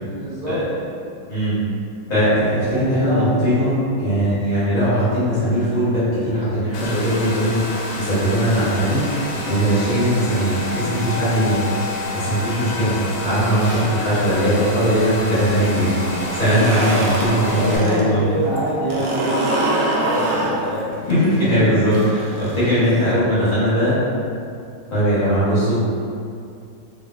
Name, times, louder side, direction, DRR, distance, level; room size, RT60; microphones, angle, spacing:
voice 1, 0.0-0.6 2.6-3.4 16.7-20.9, right 1 dB, 30° right, -13 dB, 0.8 m, -26 dB
voice 2, 2.1-9.0 9.4-11.6 12.1-12.9 13.2-18.2 21.1-24.0 24.9-25.8, equal, 50° left, -12 dB, 1.0 m, -19 dB
Domestic sounds home sounds, 6.7-17.8, left 2 dB, 75° left, 1.3 m, -29 dB
sound 1, 16.2-18.0 18.3-23.1, right 1 dB, 75° right, 1.2 m, -25 dB
3.1 x 2.5 x 2.3 m, 2.4 s
omnidirectional pair, 2.3 m